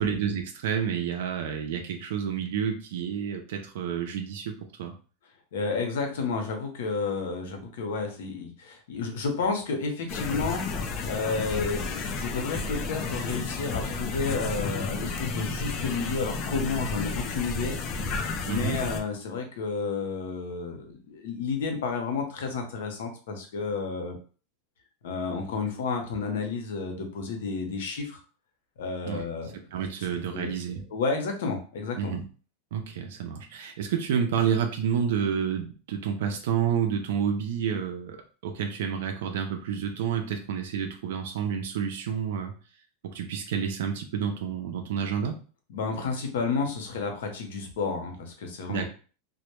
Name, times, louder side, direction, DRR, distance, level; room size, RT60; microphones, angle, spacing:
voice 1, 0.0-4.9 16.8-16.9 18.5-18.8 29.0-29.2 29.7-30.8 32.0-32.2 32.7-38.2 38.4-42.5 43.0-45.4 48.7-48.9, right 7 dB, 75° right, 4 dB, 0.4 m, -29 dB
voice 2, 5.5-10.6 11.0-17.8 18.4-24.2 25.0-28.2 28.8-29.5 30.3-30.5 30.9-32.1 45.7-48.8, left 4 dB, 80° left, 4 dB, 0.7 m, -31 dB
sound 1, 10.1-19.0, left 4 dB, 35° left, 0.3 m, -32 dB
2.1 x 2.0 x 2.9 m, 0.38 s
supercardioid pair, 155°, 0 cm